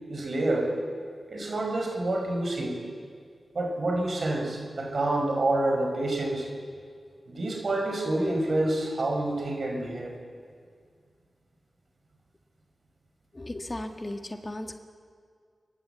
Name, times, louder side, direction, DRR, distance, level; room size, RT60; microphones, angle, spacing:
voice 1, 0.1-0.7 1.3-2.8 3.5-6.5 7.3-10.1, right 2 dB, 60° right, 2 dB, 5.8 m, -28 dB
voice 2, 13.3-14.8, left 1 dB, 30° left, 5 dB, 1.8 m, -36 dB
29.0 x 11.0 x 8.3 m, 2.1 s
cardioid pair, 45°, 0 cm